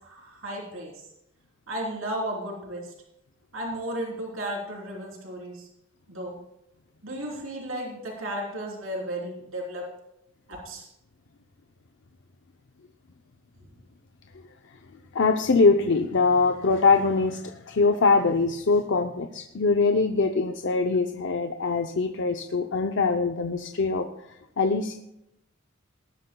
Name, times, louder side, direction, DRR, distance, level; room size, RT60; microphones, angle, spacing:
voice 1, 0.0-1.0 1.7-2.9 3.5-5.7 6.1-6.3 7.0-9.8 10.5-10.9, right 1 dB, 75° right, -2 dB, 3.6 m, -34 dB
voice 2, 15.1-24.1 24.6-24.9, left 4 dB, 65° left, 5 dB, 0.6 m, -23 dB
19.0 x 12.0 x 2.3 m, 0.82 s
head